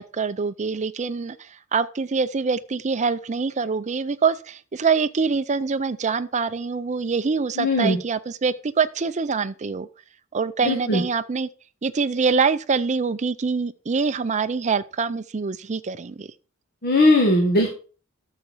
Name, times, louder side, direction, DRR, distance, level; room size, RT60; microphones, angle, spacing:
voice 1, 0.0-9.9 10.3-11.5 11.8-16.3, right 5 dB, 35° right, 0.5 m, -25 dB
voice 2, 7.6-8.0 10.6-11.0 16.8-17.7, left 1 dB, 45° left, 1.8 m, -19 dB
13.0 x 6.6 x 4.5 m
head